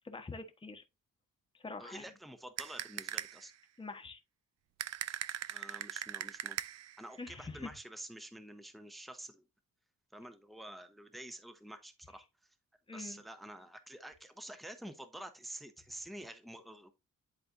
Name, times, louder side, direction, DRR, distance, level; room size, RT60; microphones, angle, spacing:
voice 1, 0.0-0.8 1.6-2.0 3.8-4.2 7.2-7.7 12.9-13.2, left 3 dB, 15° left, 1.1 m, -44 dB
voice 2, 1.8-3.5 5.5-6.6 7.0-9.4 10.1-12.2 12.9-16.9, right 1 dB, ahead, 0.8 m, -48 dB
sound 1, 2.6-3.5 4.8-7.0, right 11 dB, 50° right, 0.5 m, -40 dB
11.0 x 4.2 x 2.5 m
cardioid pair, 120°, 33 cm